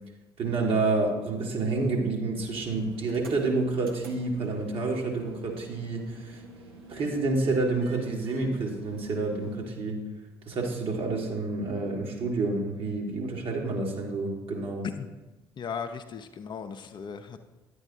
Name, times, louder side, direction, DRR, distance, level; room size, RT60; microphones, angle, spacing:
voice 1, 0.4-6.4 6.9-10.0 10.5-14.9, right 3 dB, 45° right, 1 dB, 1.5 m, -29 dB
sound 1, 2.2-9.6, right 2 dB, 80° right, 0.8 m, -48 dB
voice 2, 15.6-17.4, left 6 dB, 40° left, 7 dB, 0.5 m, -37 dB
10.5 x 8.4 x 2.7 m, 1.1 s
figure-of-eight pair, 50°, 12 cm